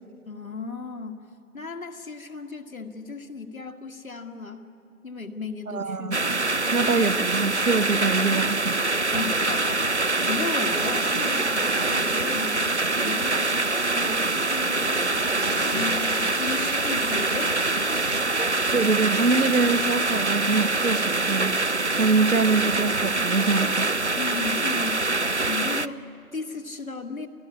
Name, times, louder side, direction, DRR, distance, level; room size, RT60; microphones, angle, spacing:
voice 1, 0.3-1.2 1.5-4.7 5.0-6.2 9.1-17.6 24.2-27.3, left 4 dB, 65° left, 1.9 m, -35 dB
voice 2, 5.7-6.4 6.7-8.8 18.7-21.6 21.9-24.1, right 4 dB, 75° right, 1.1 m, -24 dB
sound 1, 6.1-25.9, right 2 dB, 50° right, 0.5 m, -24 dB
sound 2, 10.8-14.8 15.4-18.2, right 1 dB, 35° right, 1.1 m, -42 dB
28.5 x 17.0 x 9.7 m
figure-of-eight pair, 180°, 45 cm